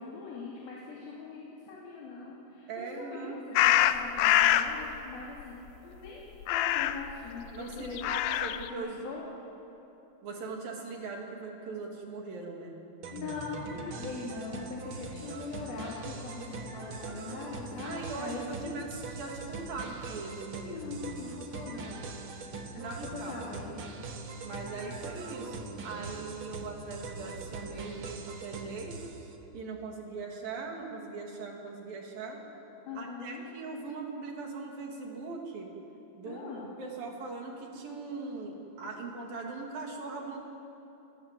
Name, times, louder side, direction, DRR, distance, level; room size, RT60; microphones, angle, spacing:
voice 1, 0.0-8.0 8.5-9.2 13.1-18.7 20.6-22.4 22.7-23.8 32.9-33.5 36.2-36.7, left 4 dB, 55° left, -4 dB, 4.5 m, -41 dB
voice 2, 2.7-3.6 7.5-9.1 10.2-12.8 17.8-20.9 22.8-23.4 24.4-29.1 29.5-32.4 32.9-35.7 36.1-40.4, right 3 dB, 55° right, 0 dB, 4.2 m, -40 dB
sound 1, 3.6-4.7 6.4-7.1 7.9-8.7, left 13 dB, 80° left, 2.2 m, -24 dB
sound 2, 13.0-29.3, right 4 dB, 85° right, 1.1 m, -42 dB
28.0 x 21.0 x 7.7 m, 3.0 s
omnidirectional pair, 5.3 m